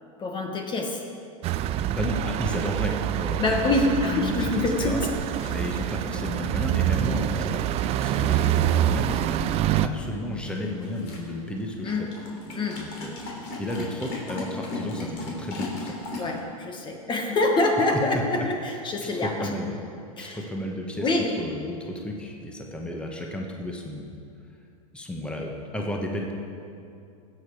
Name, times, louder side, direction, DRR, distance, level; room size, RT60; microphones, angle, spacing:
voice 1, 0.2-1.0 3.4-5.0 5.4-5.6 11.8-12.1 12.5-12.9 16.2-19.5 20.2-20.4 21.0-21.4, left 2 dB, 25° left, 3 dB, 1.3 m, -25 dB
sound 1, 1.4-9.9, right 12 dB, 35° right, 0.4 m, -26 dB
voice 2, 1.9-4.5 4.8-5.0 5.5-7.6 7.9-9.4 9.8-12.1 12.8-13.1 13.6-15.9 19.0-19.9 20.2-21.1 21.4-24.1 24.9-26.3, left 1 dB, 5° left, 1 dB, 1.3 m, -33 dB
sound 2, 4.3-16.4, left 2 dB, 55° left, 3.3 m, -39 dB
17.0 x 7.3 x 4.9 m, 2.6 s
hypercardioid pair, 115°, 18 cm